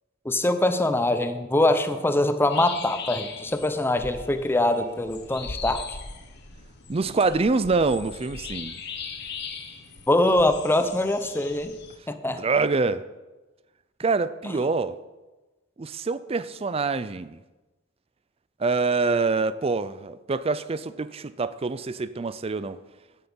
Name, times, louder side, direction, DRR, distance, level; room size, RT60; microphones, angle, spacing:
voice 1, 0.2-6.0 10.1-11.7 12.1-12.4 14.4-14.5, left 1 dB, 10° left, 0.7 m, -23 dB
sound 1, 2.5-12.0, left 5 dB, 60° left, 1.4 m, -39 dB
voice 2, 6.9-8.8 12.3-13.0 14.0-15.0 15.8-17.4 18.6-22.8, right 4 dB, 30° right, 0.4 m, -25 dB
11.5 x 9.4 x 5.5 m
head